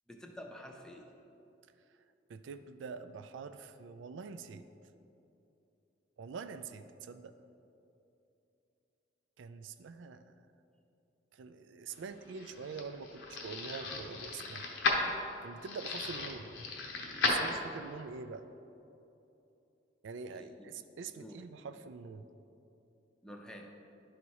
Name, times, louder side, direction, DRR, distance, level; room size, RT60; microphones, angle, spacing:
voice 1, 0.1-1.1 20.3-20.7 21.2-21.4 23.2-23.7, equal, 5° left, 2 dB, 0.6 m, -49 dB
voice 2, 2.3-4.7 6.2-7.3 9.4-10.2 11.3-14.7 15.4-16.5 17.2-18.4 20.0-22.2, right 5 dB, 85° right, 11 dB, 0.4 m, -45 dB
sound 1, 12.0-18.0, left 3 dB, 80° left, 1.0 m, -35 dB
11.0 x 4.1 x 4.7 m, 2.8 s
head